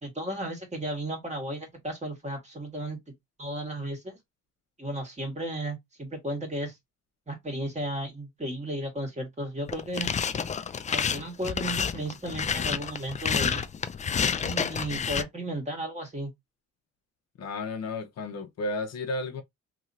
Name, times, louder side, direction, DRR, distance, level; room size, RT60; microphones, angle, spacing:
voice 1, 0.0-3.0 3.4-4.2 4.8-6.8 7.3-10.1 10.9-13.7 14.4-16.3, right 1 dB, 25° right, 1.7 m, -34 dB
sound 1, 9.7-15.2, left 6 dB, 25° left, 0.3 m, -29 dB
voice 2, 17.4-19.4, left 2 dB, 60° left, 0.8 m, -33 dB
3.0 x 2.8 x 2.6 m
cardioid pair, 90°, 30 cm